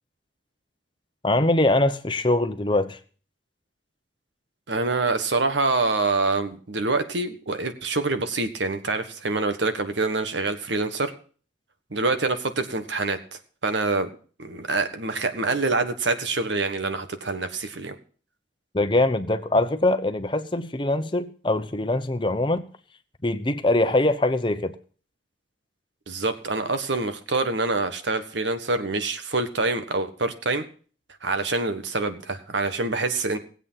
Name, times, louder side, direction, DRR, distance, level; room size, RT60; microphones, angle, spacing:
voice 1, 1.2-3.0 18.7-22.6 23.2-24.7, left 2 dB, 25° left, 9 dB, 0.9 m, -23 dB
voice 2, 4.7-11.1 11.9-14.1 14.4-17.9 26.1-30.6 31.2-33.4, right 3 dB, 80° right, 9 dB, 1.5 m, -26 dB
18.5 x 8.2 x 5.7 m, 0.41 s
head